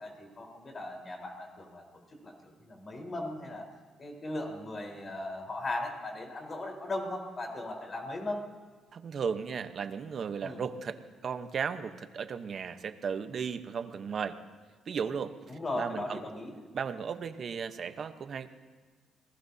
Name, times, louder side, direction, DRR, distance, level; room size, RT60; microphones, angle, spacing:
voice 1, 0.0-1.8 2.2-3.6 4.0-8.4 10.4-10.6 15.5-16.5, left 2 dB, 35° left, 1 dB, 4.2 m, -38 dB
voice 2, 8.9-10.9 11.2-14.4 14.9-15.3 15.8-16.2 16.7-18.5, right 6 dB, 55° right, 9 dB, 1.0 m, -35 dB
27.0 x 19.0 x 2.8 m, 1.5 s
cardioid pair, 90°, 0 cm